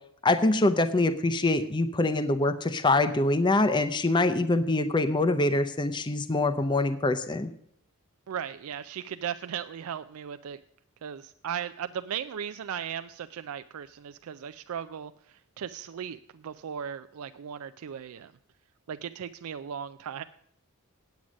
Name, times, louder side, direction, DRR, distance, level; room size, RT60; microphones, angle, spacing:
voice 1, 0.2-7.5, left 2 dB, 20° left, 10 dB, 0.5 m, -24 dB
voice 2, 8.3-10.6 11.0-18.3 18.9-20.2, right 8 dB, 75° right, 11 dB, 0.4 m, -37 dB
9.2 x 8.6 x 6.2 m, 0.71 s
head